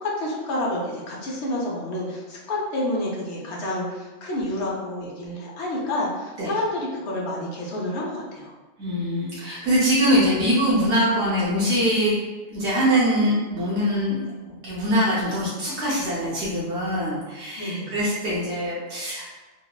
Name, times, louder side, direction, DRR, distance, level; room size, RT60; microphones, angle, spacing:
voice 1, 0.0-8.5 17.6-18.0, left 1 dB, 80° left, -3 dB, 0.9 m, -29 dB
voice 2, 8.8-12.2 12.5-19.3, equal, 85° right, -8 dB, 1.0 m, -23 dB
3.0 x 2.1 x 2.2 m, 1.2 s
omnidirectional pair, 1.1 m